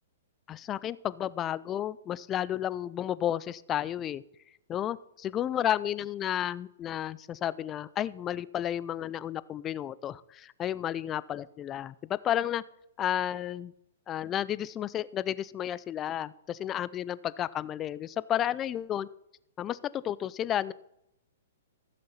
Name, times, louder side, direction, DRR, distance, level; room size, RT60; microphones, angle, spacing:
voice 1, 0.5-4.2 4.7-12.6 13.0-13.7 14.1-19.1 19.6-20.7, left 11 dB, 20° left, 18 dB, 0.4 m, -32 dB
14.5 x 6.8 x 5.6 m, 0.80 s
hypercardioid pair, 145°, 0 cm